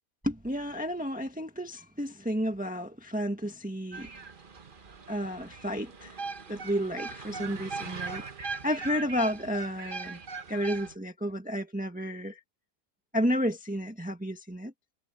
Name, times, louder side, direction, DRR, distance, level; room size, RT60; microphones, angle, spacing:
voice 1, 0.2-4.1 5.1-6.2 6.5-10.2 10.5-12.4 13.1-14.7, equal, 5° right, 1.7 m, -32 dB
sound 1, 3.9-10.9, right 4 dB, 35° right, 1.3 m, -40 dB
omnidirectional pair, 1.6 m